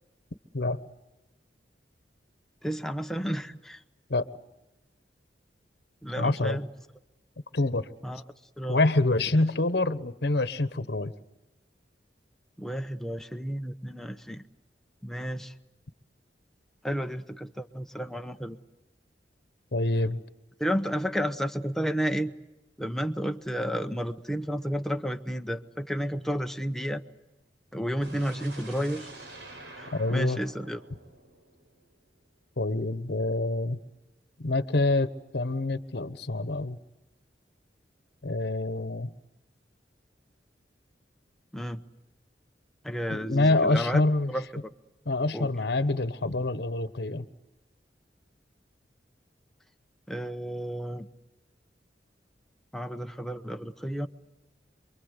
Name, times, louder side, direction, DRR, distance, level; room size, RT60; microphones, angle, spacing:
voice 1, 2.6-3.8 6.0-6.7 8.0-8.2 8.6-8.8 12.6-14.4 15.0-15.5 16.8-18.6 20.6-22.3 22.8-27.0 27.7-29.1 29.8-30.8 41.5-41.8 42.8-44.0 44.3-44.7 45.3-45.5 50.1-51.1 52.7-54.1, equal, ahead, 7 dB, 1.0 m, -32 dB
voice 2, 6.2-6.6 7.5-7.9 8.7-11.1 19.7-20.2 29.9-30.4 32.6-33.8 34.4-36.8 38.2-39.1 43.1-44.3 45.1-47.3, left 2 dB, 65° left, 12 dB, 1.2 m, -26 dB
sound 1, 28.0-32.0, right 2 dB, 90° right, 4.7 m, -46 dB
28.0 x 23.5 x 8.2 m, 0.98 s
head